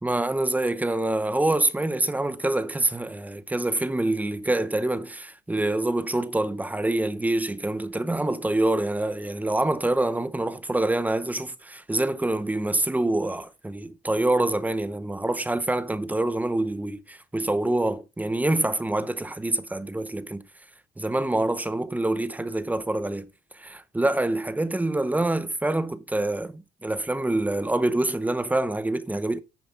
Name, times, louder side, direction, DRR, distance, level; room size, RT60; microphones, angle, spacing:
voice 1, 0.0-20.4 21.0-23.3 23.5-29.4, right 2 dB, 10° right, 0.9 m, -26 dB
11.0 x 7.2 x 4.2 m
cardioid pair, 110°, 17 cm